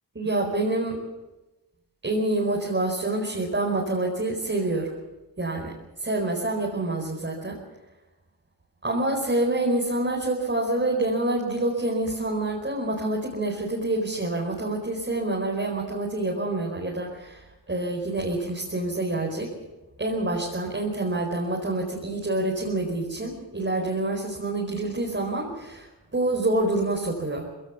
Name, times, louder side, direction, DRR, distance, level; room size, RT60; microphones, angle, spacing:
voice 1, 0.1-1.0 2.0-4.9 5.4-5.7 6.0-7.6 8.8-19.5 20.0-27.5, right 2 dB, 30° right, -2 dB, 4.7 m, -27 dB
21.0 x 17.0 x 7.2 m, 1.0 s
cardioid pair, 70°, 39 cm